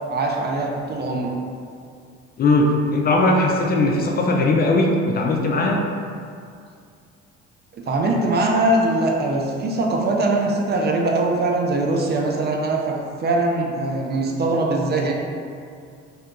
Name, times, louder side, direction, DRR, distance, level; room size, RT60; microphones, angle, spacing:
voice 1, 0.1-1.3 7.9-15.1, right 2 dB, 35° right, 0 dB, 0.4 m, -22 dB
voice 2, 2.4-5.8, left 2 dB, 30° left, 0 dB, 0.4 m, -19 dB
2.8 x 2.2 x 3.6 m, 2.3 s
supercardioid pair, 85°, 30 cm